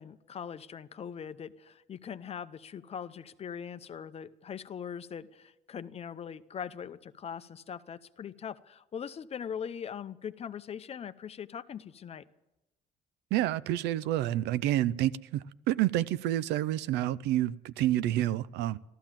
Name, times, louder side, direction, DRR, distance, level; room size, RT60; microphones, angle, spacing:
voice 1, 0.0-12.2, left 7 dB, 35° left, 0.7 m, -41 dB
voice 2, 13.3-18.8, right 13 dB, 85° right, 0.5 m, -29 dB
13.5 x 13.5 x 7.4 m
cardioid pair, 110°, 17 cm